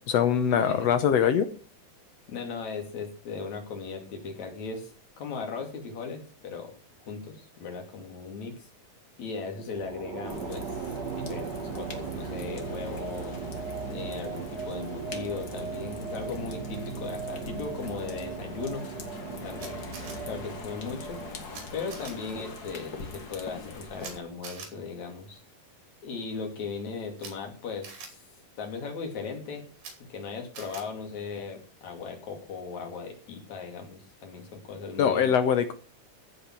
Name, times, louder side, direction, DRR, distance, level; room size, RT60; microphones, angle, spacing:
voice 1, 0.1-1.5 35.0-35.7, left 8 dB, 75° left, 9 dB, 1.5 m, -23 dB
voice 2, 2.3-4.9 5.2-6.7 7.0-8.7 9.2-10.8 11.1-13.4 13.9-18.8 19.4-19.8 20.3-21.2 21.7-25.4 26.0-28.2 28.6-29.6 30.1-35.3, left 4 dB, 55° left, 3 dB, 3.8 m, -37 dB
sound 1, 9.7-22.3, right 5 dB, 50° right, 1.3 m, -37 dB
sound 2, 10.2-24.2, left 3 dB, 35° left, 1.7 m, -43 dB
Camera, 19.6-20.1 21.5-21.6 21.9-22.1 24.0-24.1 24.4-24.7 27.2-27.3 27.8-28.1 29.8-29.9 30.5-30.8, right 5 dB, 75° right, 4.6 m, -42 dB
15.5 x 5.7 x 7.6 m, 0.40 s
omnidirectional pair, 4.1 m